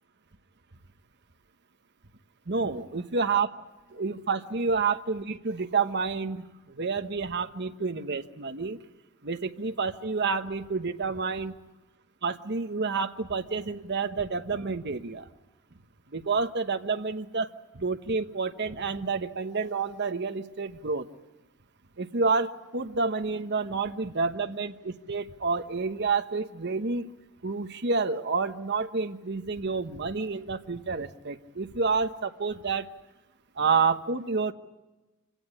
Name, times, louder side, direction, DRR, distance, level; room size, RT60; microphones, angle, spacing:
voice 1, 2.5-3.5 3.9-8.8 9.2-11.5 12.2-15.3 16.1-17.5 17.7-21.1 22.0-27.1 27.4-32.9 33.6-34.5, right 4 dB, 55° right, 8 dB, 1.2 m, -29 dB
26.0 x 17.5 x 9.9 m, 1.1 s
head